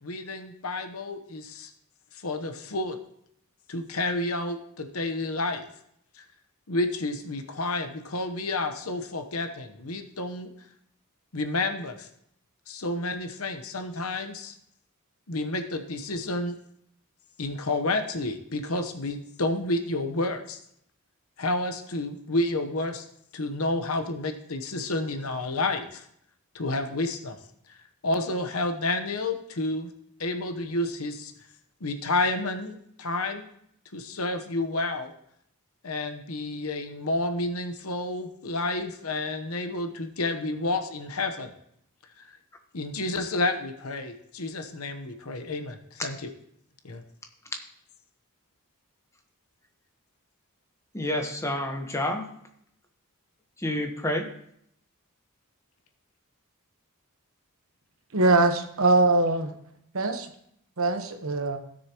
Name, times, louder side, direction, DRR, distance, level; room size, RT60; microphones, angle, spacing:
voice 1, 0.0-1.7 2.2-3.0 3.7-5.6 6.2-6.3 6.7-10.5 11.3-12.1 12.7-14.5 15.3-16.6 17.4-20.6 21.4-23.0 23.3-26.0 26.5-27.4 28.0-29.9 30.2-31.3 31.8-33.5 33.9-35.1 35.8-41.5 42.2-42.3 42.7-46.3 46.8-47.0, left 2 dB, 70° left, 7 dB, 1.0 m, -30 dB
voice 2, 50.9-52.2 53.6-54.3, left 1 dB, 15° left, 4 dB, 1.1 m, -29 dB
voice 3, 58.1-59.5 59.9-60.3 60.8-61.6, right 2 dB, 65° right, 6 dB, 1.1 m, -22 dB
16.0 x 6.6 x 3.0 m, 0.70 s
head